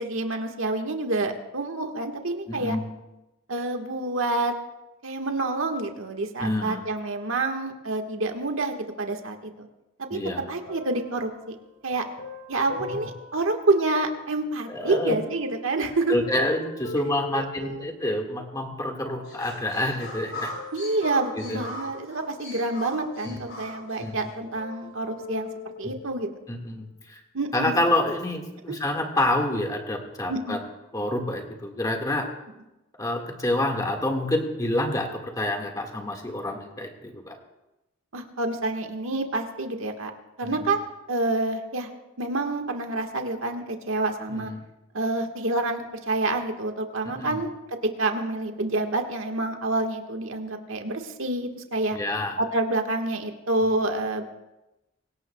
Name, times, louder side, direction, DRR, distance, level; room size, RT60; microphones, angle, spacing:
voice 1, 0.0-2.8 3.5-4.5 5.0-9.7 10.1-10.2 10.5-11.5 11.8-12.0 12.5-16.1 17.3-17.8 20.7-25.5 25.8-26.3 27.3-27.8 30.3-30.6 38.1-40.1 40.4-41.9 42.2-44.5 44.9-52.0 52.4-54.2, right 2 dB, 70° right, 4 dB, 1.5 m, -28 dB
voice 2, 2.5-2.9 6.4-6.8 10.1-10.4 14.7-15.1 16.1-20.5 21.3-21.6 23.2-23.4 24.0-24.1 26.5-27.2 27.5-30.6 30.9-32.3 33.0-37.4 40.4-40.7 44.3-44.6 47.0-47.4 51.9-52.4, left 1 dB, 15° left, 3 dB, 1.7 m, -28 dB
sound 1, 10.7-14.3 14.8-18.3 19.0-19.7 20.3-22.6 23.0-24.1 24.3-26.4 27.0-27.1, left 4 dB, 80° left, 1.5 m, -43 dB
sound 2, 19.2-24.3, left 2 dB, 50° left, 6.9 m, -39 dB
24.0 x 17.5 x 2.3 m, 0.97 s
head